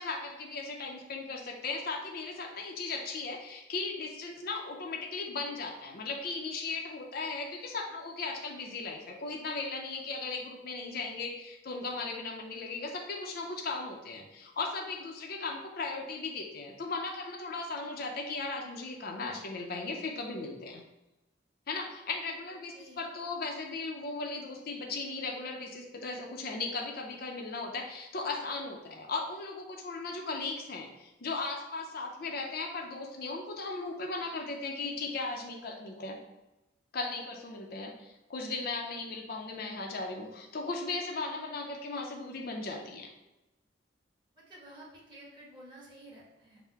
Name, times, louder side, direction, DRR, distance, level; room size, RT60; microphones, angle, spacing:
voice 1, 0.0-20.8 21.7-36.2 36.9-43.1, left 3 dB, 55° left, 1 dB, 0.5 m, -37 dB
voice 2, 22.7-23.1 44.3-46.6, right 1 dB, 25° right, -6 dB, 1.4 m, -52 dB
5.5 x 2.1 x 4.5 m, 0.98 s
head